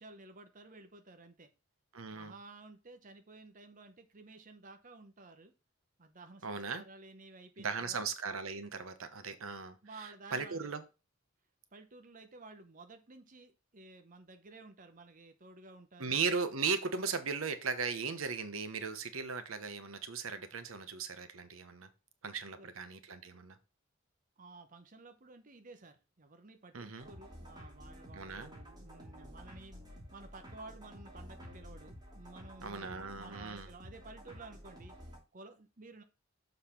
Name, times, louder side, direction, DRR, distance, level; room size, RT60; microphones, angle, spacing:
voice 1, 0.0-1.5 2.1-5.5 6.0-8.0 9.8-10.7 11.7-16.2 22.5-22.7 24.4-29.8 30.1-34.9 35.3-36.0, right 3 dB, 40° right, 0.8 m, -53 dB
voice 2, 1.9-2.3 6.4-6.8 7.6-9.8 10.3-10.8 16.0-21.9 22.2-23.6 26.7-27.1 28.1-28.5 32.6-33.7, right 5 dB, 90° right, 1.0 m, -37 dB
sound 1, 27.0-35.2, equal, 20° right, 2.7 m, -51 dB
6.9 x 4.0 x 5.7 m
head